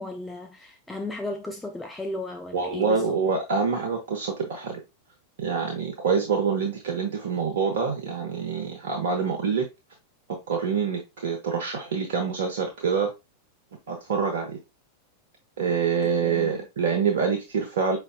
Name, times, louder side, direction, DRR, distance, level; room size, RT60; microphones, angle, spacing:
voice 1, 0.0-3.2 16.0-16.7, left 2 dB, 10° left, 0.6 m, -35 dB
voice 2, 2.5-4.8 5.4-9.7 10.5-13.1 13.9-14.6 15.6-18.0, right 6 dB, 60° right, 0.8 m, -26 dB
5.3 x 3.4 x 2.4 m
figure-of-eight pair, 90°, 0 cm